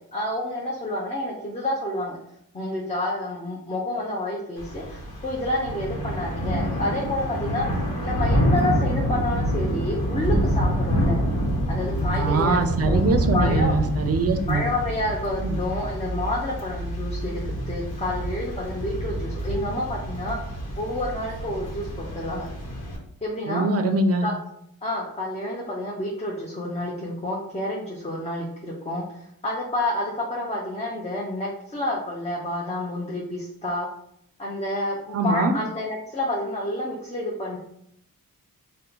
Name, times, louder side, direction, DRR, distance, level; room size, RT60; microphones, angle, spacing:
voice 1, 0.1-2.2 2.5-7.7 8.0-11.2 11.7-12.6 12.9-13.7 14.5-22.5 23.2-23.7 24.2-24.3 24.8-33.9 34.4-37.6, left 1 dB, 20° left, -3 dB, 0.6 m, -29 dB
Thunder / Rain, 4.6-23.0, equal, 80° left, 1.0 m, -27 dB
voice 2, 12.2-14.7 15.4-15.6 23.5-24.3 35.1-35.5, right 3 dB, 40° right, 7 dB, 0.5 m, -23 dB
2.7 x 2.2 x 3.8 m, 0.74 s
cardioid pair, 70°, 37 cm